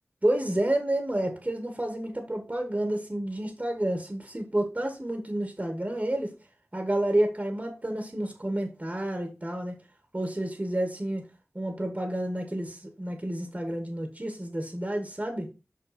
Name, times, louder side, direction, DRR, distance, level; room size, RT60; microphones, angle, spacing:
voice 1, 0.2-6.3 6.7-9.7 10.1-11.2 11.5-15.5, right 1 dB, 30° right, 1.4 m, -30 dB
5.7 x 5.6 x 4.2 m
wide cardioid pair, 50°, 5 cm